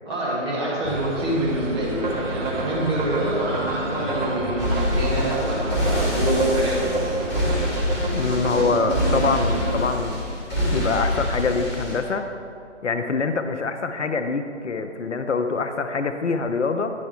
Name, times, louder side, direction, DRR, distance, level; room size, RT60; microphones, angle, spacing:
voice 1, 0.1-6.9, right 1 dB, 20° right, -6 dB, 1.4 m, -26 dB
sound 1, 0.8-7.5, right 2 dB, 85° right, 0.9 m, -33 dB
sound 2, 2.0-9.8, right 2 dB, 40° right, 1.0 m, -29 dB
sound 3, 4.6-12.0, left 1 dB, 15° left, 1.9 m, -26 dB
voice 2, 8.1-12.3 12.8-16.9, left 4 dB, 70° left, 7 dB, 0.6 m, -25 dB
9.4 x 5.5 x 3.4 m, 2.3 s
figure-of-eight pair, 145°, 37 cm